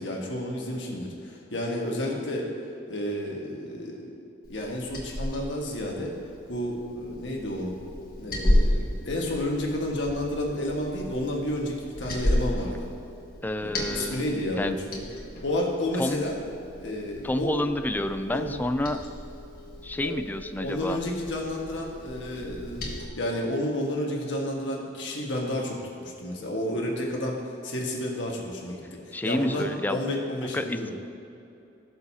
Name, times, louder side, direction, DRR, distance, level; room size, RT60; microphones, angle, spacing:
voice 1, 0.0-2.5 2.9-4.1 4.5-6.1 6.5-7.8 8.2-12.9 13.6-14.9 15.4-16.4 16.8-17.5 18.3-18.6 20.0-20.1 20.6-27.4 27.6-28.8 29.2-30.9, left 1 dB, 70° left, -1 dB, 1.6 m, -31 dB
Liquid, 4.4-23.1, left 1 dB, 55° left, 1.6 m, -33 dB
voice 2, 13.4-14.2 14.6-14.8 16.0-16.2 17.2-19.0 19.8-21.0 29.1-30.0 30.5-30.9, left 1 dB, 10° left, 9 dB, 0.4 m, -29 dB
16.5 x 6.7 x 2.8 m, 2.7 s
head